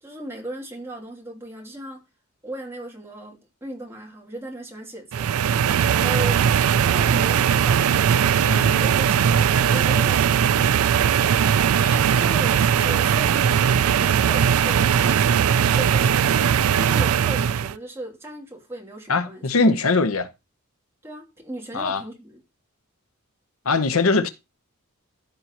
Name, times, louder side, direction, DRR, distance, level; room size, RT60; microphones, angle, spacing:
voice 1, 0.0-2.0 2.4-5.3 5.9-6.5 12.1-13.6 14.0-15.4 15.7-19.5 21.0-22.4, right 1 dB, 10° right, 2.8 m, -37 dB
sound 1, 5.1-17.7, right 8 dB, 80° right, 0.4 m, -19 dB
voice 2, 11.8-12.1 19.1-20.3 21.7-22.0 23.7-24.3, left 3 dB, 70° left, 0.9 m, -21 dB
14.5 x 5.2 x 3.0 m
head